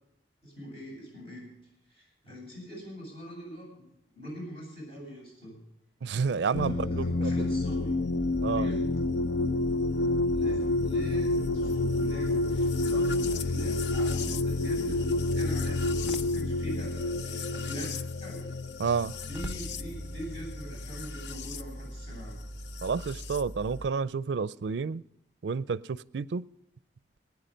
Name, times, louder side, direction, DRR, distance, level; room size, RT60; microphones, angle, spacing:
voice 1, 0.4-1.5 1.9-5.6 6.5-8.0 8.5-8.9 10.0-17.9 18.2-18.5 19.2-22.4, equal, 35° left, 7.8 m, -43 dB
voice 2, 6.0-7.3 8.4-8.7 18.8-19.1 22.8-25.0 25.4-26.4, right 5 dB, 85° right, 0.4 m, -30 dB
sound 1, 6.5-21.6 22.8-23.4, left 2 dB, 85° left, 0.6 m, -29 dB
sound 2, 8.1-16.3 19.2-23.9, right 1 dB, 5° right, 0.7 m, -42 dB
19.5 x 9.5 x 5.2 m
head